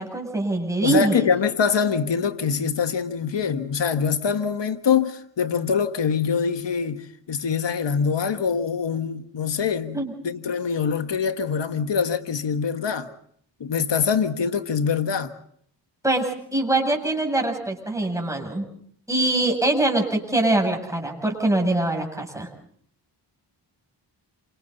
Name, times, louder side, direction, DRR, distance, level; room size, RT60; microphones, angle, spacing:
voice 1, 0.0-1.2 9.9-10.1 16.0-18.7 19.1-22.5, right 2 dB, 5° right, 7.8 m, -23 dB
voice 2, 0.8-13.1 13.6-15.3, left 6 dB, 70° left, 1.6 m, -24 dB
28.0 x 26.5 x 4.1 m
cardioid pair, 50°, 45 cm